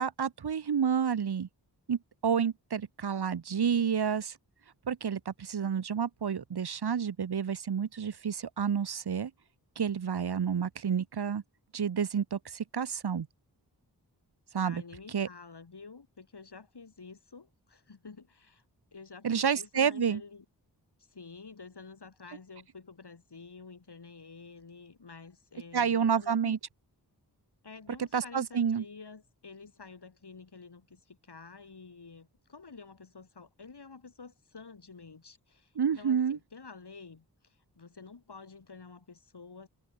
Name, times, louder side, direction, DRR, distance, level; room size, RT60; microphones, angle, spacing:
voice 1, 0.0-1.5 1.9-4.4 4.9-9.3 9.8-11.4 11.7-13.3 14.5-14.8 15.1-15.3 19.2-20.2 25.7-26.6 28.0-28.8 35.8-36.4, right 7 dB, 65° right, 1.0 m, -29 dB
voice 2, 14.6-18.6 18.9-20.4 21.1-26.6 27.6-39.7, left 4 dB, 70° left, 4.0 m, -50 dB
cardioid pair, 45°, 42 cm